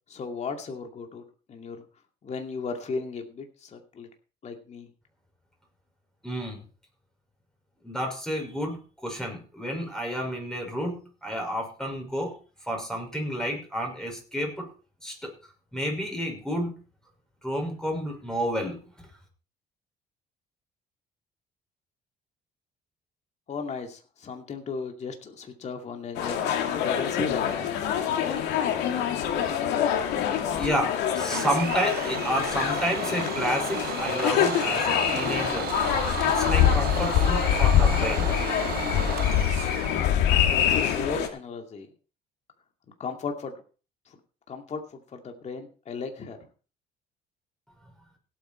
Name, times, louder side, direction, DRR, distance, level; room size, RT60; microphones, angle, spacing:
voice 1, 0.1-1.2 1.5-1.8 2.2-4.1 4.4-4.9 23.5-26.4 26.8-27.7 40.5-41.9 43.0-43.5 44.1-44.2 44.5-46.5, left 4 dB, 40° left, 4 dB, 2.5 m, -35 dB
voice 2, 6.2-6.6 7.8-14.7 15.0-15.3 15.7-16.8 17.4-19.1 30.5-35.7 36.2-38.3, equal, 5° left, 1 dB, 5.9 m, -31 dB
sound 1, 26.1-41.3, left 9 dB, 85° left, 2.3 m, -25 dB
Domestic sounds home sounds, 31.3-40.0, right 12 dB, 65° right, 1.0 m, -34 dB
17.0 x 8.6 x 4.5 m, 0.37 s
cardioid pair, 110°, 17 cm